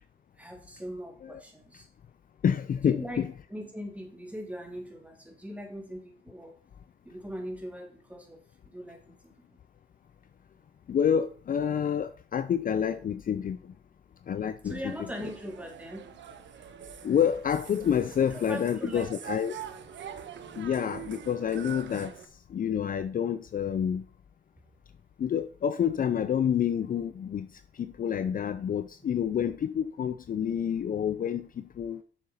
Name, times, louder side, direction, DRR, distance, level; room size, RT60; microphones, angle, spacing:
voice 1, 0.4-1.9 2.8-6.6 7.0-9.2 14.6-16.1 18.3-19.0, equal, 5° right, 3.4 m, -41 dB
voice 2, 2.4-3.3 10.9-13.7 14.3-14.9 17.0-19.6 20.5-22.1 22.5-24.1 25.2-27.5 27.7-32.0, left 8 dB, 45° left, 0.6 m, -28 dB
sound 1, 14.6-22.3, right 9 dB, 65° right, 1.2 m, -44 dB
7.0 x 6.7 x 5.7 m
cardioid pair, 90°, 20 cm